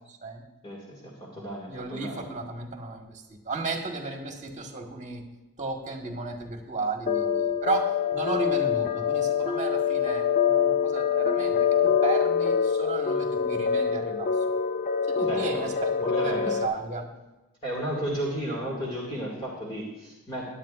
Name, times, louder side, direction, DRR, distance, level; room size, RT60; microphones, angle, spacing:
voice 1, 0.0-0.4 1.4-5.2 5.6-14.3 15.1-17.1, right 3 dB, 35° right, 2 dB, 1.5 m, -34 dB
voice 2, 0.6-2.2 15.3-15.6 16.0-16.6 17.6-20.4, right 1 dB, 20° left, -4 dB, 2.2 m, -33 dB
sound 1, 7.1-16.7, left 7 dB, 35° left, 0.6 m, -25 dB
18.0 x 10.5 x 2.5 m, 1.1 s
head